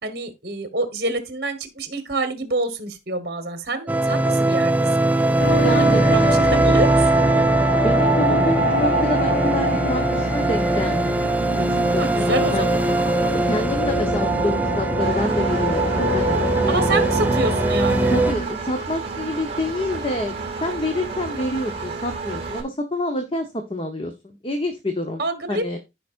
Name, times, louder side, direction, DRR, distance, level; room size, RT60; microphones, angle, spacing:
voice 1, 0.0-4.7 5.3-7.1 12.0-12.7 16.7-18.2 25.2-25.8, right 2 dB, 55° right, 1.4 m, -27 dB
sound 1, 3.9-18.3, right 2 dB, 10° right, 0.4 m, -21 dB
sound 2, 5.4-18.5, right 1 dB, 50° left, 3.5 m, -25 dB
voice 2, 5.5-6.4 7.7-12.8 13.3-17.1 18.1-20.3 20.6-25.2 25.5-25.8, left 1 dB, 30° left, 0.9 m, -28 dB
Engine, 15.0-22.6, right 4 dB, 35° right, 2.2 m, -31 dB
15.0 x 5.1 x 2.5 m
head